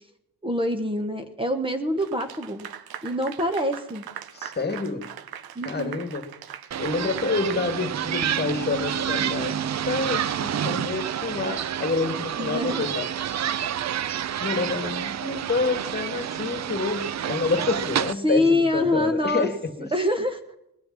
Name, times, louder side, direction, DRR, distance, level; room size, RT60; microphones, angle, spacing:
voice 1, 0.4-2.7 3.0-4.0 5.5-6.0 12.4-12.8 18.2-19.5 19.9-20.4, left 1 dB, 15° right, 6 dB, 1.3 m, -25 dB
Clapping / Applause, 2.0-8.3, right 10 dB, 90° right, 1.0 m, -41 dB
voice 2, 4.3-5.1 5.6-6.3 6.8-13.1 14.4-19.9, left 4 dB, 30° left, 8 dB, 2.0 m, -28 dB
sound 1, 6.7-18.1, right 9 dB, 50° right, 0.6 m, -29 dB
20.5 x 6.9 x 7.2 m, 0.82 s
cardioid pair, 115°, 35 cm